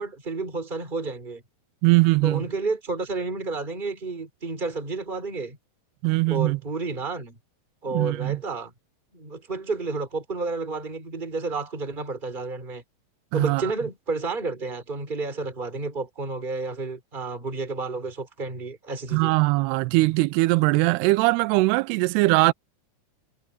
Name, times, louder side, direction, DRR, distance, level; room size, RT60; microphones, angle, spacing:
voice 1, 0.0-1.4 2.2-5.6 6.3-7.4 7.8-8.7 9.1-12.8 13.3-19.4, right 3 dB, 10° right, 4.2 m, -31 dB
voice 2, 1.8-2.4 6.0-6.6 7.9-8.4 13.3-13.7 19.1-22.5, right 23 dB, 85° right, 2.6 m, -21 dB
omnidirectional pair, 4.6 m